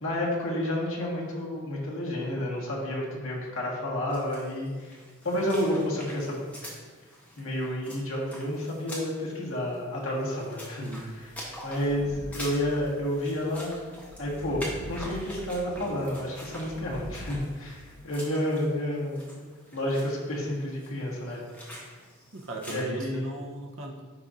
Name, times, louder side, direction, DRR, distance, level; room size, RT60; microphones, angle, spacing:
voice 1, 0.0-5.0 5.2-6.5 7.4-10.8 11.1-11.3 11.6-13.8 14.2-19.3 19.7-21.4 22.7-23.3, left 1 dB, 70° left, -4 dB, 1.5 m, -30 dB
sound 1, 4.1-22.8, equal, 5° left, 1.1 m, -45 dB
sound 2, 11.5-17.5, equal, 25° left, 1.1 m, -44 dB
voice 2, 22.3-24.0, right 2 dB, 65° right, 1 dB, 0.7 m, -38 dB
10.5 x 4.1 x 2.5 m, 1.4 s
head